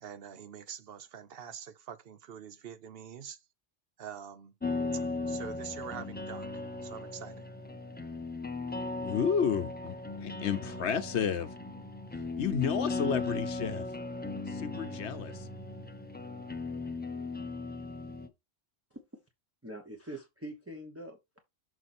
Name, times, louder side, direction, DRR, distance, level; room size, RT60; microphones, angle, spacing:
voice 1, 0.0-3.4 4.0-4.5 5.3-6.5 6.8-7.5, right 8 dB, 60° right, 1.0 m, -45 dB
sound 1, 4.6-18.3, left 3 dB, 10° left, 0.6 m, -37 dB
voice 2, 9.0-10.0 10.2-11.5 12.4-13.9 14.5-15.5, left 7 dB, 75° left, 1.1 m, -31 dB
voice 3, 19.6-21.4, right 1 dB, 15° right, 1.0 m, -44 dB
6.6 x 4.4 x 4.3 m
omnidirectional pair, 1.2 m